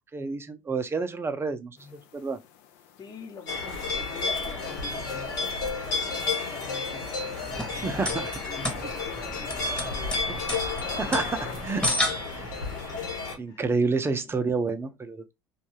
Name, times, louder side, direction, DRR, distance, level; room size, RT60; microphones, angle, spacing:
voice 1, 0.1-2.4 7.7-8.3 10.3-10.4 11.0-11.8 12.3-12.5 13.4-15.2, right 4 dB, 25° right, 0.5 m, -29 dB
sound 1, 1.8-11.5, left 9 dB, 70° left, 0.4 m, -46 dB
voice 2, 3.0-7.5 8.0-10.5 12.1-12.2 12.5-12.6 13.5-13.7 14.2-14.3 14.8-14.9, left 4 dB, 40° left, 0.9 m, -45 dB
sound 2, 3.5-13.4, left 3 dB, 90° left, 1.1 m, -32 dB
sound 3, 7.4-12.8, left 1 dB, 10° left, 1.0 m, -32 dB
2.6 x 2.3 x 3.0 m
hypercardioid pair, 70°, 10 cm